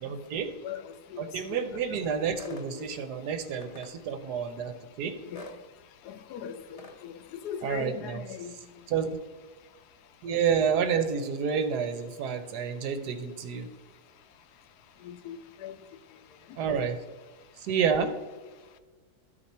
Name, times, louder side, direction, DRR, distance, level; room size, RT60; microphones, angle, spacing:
voice 1, 0.0-0.5 1.2-5.1 7.6-8.2 8.9-9.1 10.2-13.7 16.6-17.0 17.6-18.1, right 7 dB, 85° right, 1.4 m, -29 dB
sound 1, 2.4-2.7 3.6-3.9 5.3-5.6 6.8-7.0, left 1 dB, 40° left, 0.5 m, -44 dB
voice 2, 6.1-7.2 7.4-8.5 15.0-15.4 15.6-15.7, left 8 dB, 85° left, 1.2 m, -38 dB
12.5 x 4.8 x 4.3 m
omnidirectional pair, 1.7 m